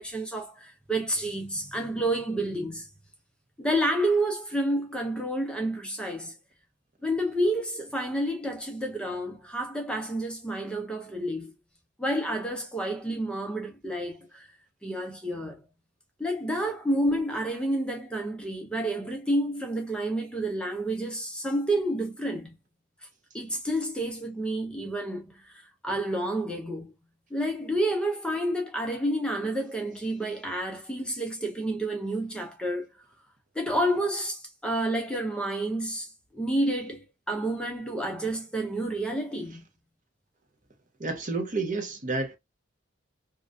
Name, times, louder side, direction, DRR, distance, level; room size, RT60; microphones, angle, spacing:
voice 1, 0.0-2.9 3.6-6.4 7.0-11.5 12.0-14.5 14.8-15.6 16.2-22.5 23.3-26.9 27.3-32.9 33.5-39.6, right 1 dB, 5° left, 0.5 m, -29 dB
voice 2, 41.0-42.4, right 3 dB, 40° right, 0.7 m, -30 dB
2.4 x 2.1 x 2.5 m
head